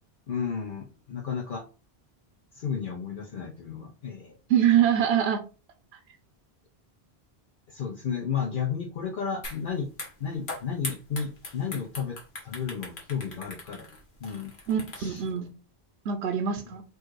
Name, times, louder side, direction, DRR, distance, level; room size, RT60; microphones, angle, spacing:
voice 1, 0.3-1.7 2.5-4.4 7.7-9.9 10.2-13.9 14.2-14.5 15.0-15.2, left 7 dB, 60° left, 0.7 m, -33 dB
voice 2, 4.5-5.4 5.9-6.0 14.7-15.5 16.1-16.8, right 9 dB, 90° right, 0.9 m, -24 dB
sound 1, 9.4-9.6 9.9-15.3, left 2 dB, 90° left, 1.6 m, -40 dB
4.4 x 2.5 x 4.5 m
omnidirectional pair, 1.0 m